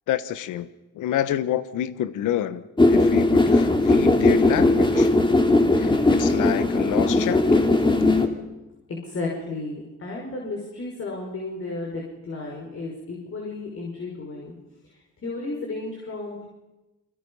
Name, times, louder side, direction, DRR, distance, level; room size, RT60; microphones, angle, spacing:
voice 1, 0.1-0.7 0.9-2.6 2.9-5.1 5.7-7.7, left 11 dB, 85° left, 15 dB, 1.3 m, -28 dB
sound 1, 2.8-8.3, left 2 dB, 15° left, 3.0 m, -18 dB
voice 2, 8.9-14.5 15.2-16.5, left 3 dB, 45° left, -1 dB, 5.8 m, -33 dB
29.0 x 24.0 x 5.6 m, 1.0 s
cardioid pair, 90°, 30 cm